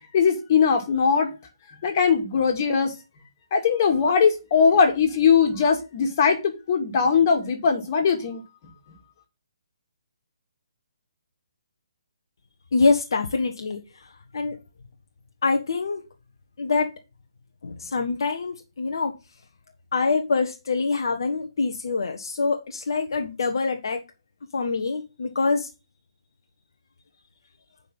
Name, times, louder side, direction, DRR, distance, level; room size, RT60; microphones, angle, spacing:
voice 1, 0.1-1.3 1.8-2.9 3.5-6.4 6.7-8.4, left 6 dB, 40° left, 2.2 m, -20 dB
voice 2, 12.7-14.6 15.4-16.0 16.6-16.9 17.6-19.1 19.9-24.0 24.5-25.7, left 4 dB, 60° left, 1.1 m, -25 dB
8.5 x 5.3 x 5.5 m
figure-of-eight pair, 135°, 3 cm